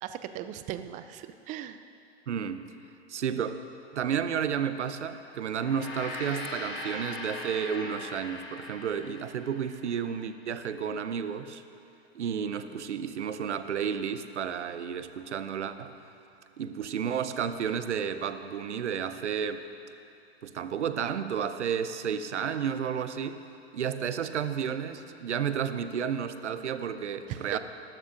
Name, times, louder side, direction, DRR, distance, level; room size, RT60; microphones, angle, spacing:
voice 1, 0.0-1.9 27.3-27.6, right 11 dB, 25° right, 10 dB, 0.4 m, -38 dB
voice 2, 2.3-2.6 3.1-3.6 3.9-11.6 12.1-15.9 16.6-19.6 20.4-23.4 23.7-27.6, right 7 dB, 85° right, 10 dB, 0.8 m, -32 dB
Gong, 5.4-10.0, left 2 dB, 35° left, 3.1 m, -40 dB
19.0 x 12.0 x 2.6 m, 2.7 s
hypercardioid pair, 115°, 34 cm